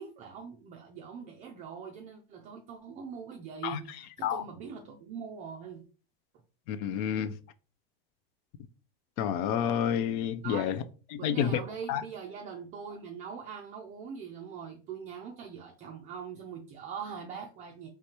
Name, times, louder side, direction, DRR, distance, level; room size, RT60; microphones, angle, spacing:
voice 1, 0.0-5.9 10.4-10.7 11.2-17.9, right 6 dB, 25° right, 0.4 m, -42 dB
voice 2, 6.7-7.3 9.2-10.8 11.1-11.6 11.9-12.0, left 9 dB, 45° left, 0.5 m, -29 dB
4.9 x 3.2 x 2.9 m
supercardioid pair, 150°, 30 cm